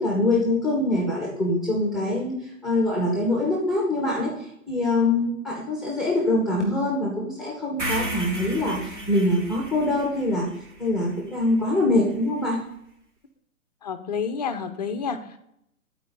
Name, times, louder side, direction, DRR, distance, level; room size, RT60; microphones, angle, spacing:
voice 1, 0.0-2.4 2.6-10.5 10.8-12.6, left 2 dB, ahead, -2 dB, 1.0 m, -24 dB
sound 1, 7.8-11.9, right 1 dB, 55° right, 2.2 m, -34 dB
voice 2, 13.8-15.4, left 6 dB, 30° left, 9 dB, 0.5 m, -29 dB
11.0 x 4.5 x 3.8 m, 0.76 s
hypercardioid pair, 140°, 42 cm